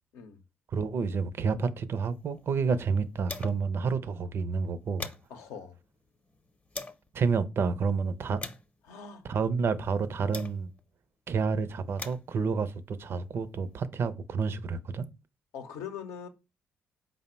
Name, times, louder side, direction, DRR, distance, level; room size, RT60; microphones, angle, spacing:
voice 1, 0.7-5.1 7.1-8.4 9.3-10.7 11.3-15.1, right 5 dB, 55° right, 0.5 m, -29 dB
sound 1, 2.0-3.8 4.1-4.2 4.6-7.1 7.7-10.9 11.6-13.8, left 2 dB, 30° left, 0.6 m, -46 dB
voice 2, 5.3-5.8 8.9-9.2 15.5-16.3, left 7 dB, 80° left, 0.6 m, -42 dB
5.0 x 2.0 x 4.3 m
hypercardioid pair, 50°, 5 cm